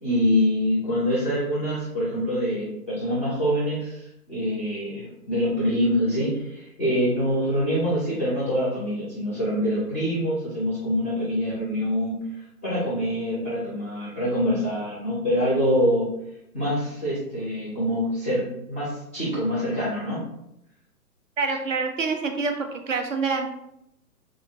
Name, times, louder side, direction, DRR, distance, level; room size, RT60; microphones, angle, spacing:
voice 1, 0.0-16.1 16.5-20.2, equal, 10° left, -9 dB, 0.4 m, -25 dB
voice 2, 21.4-23.5, right 4 dB, 55° right, 4 dB, 0.6 m, -26 dB
3.4 x 2.3 x 2.9 m, 0.81 s
figure-of-eight pair, 125°, 46 cm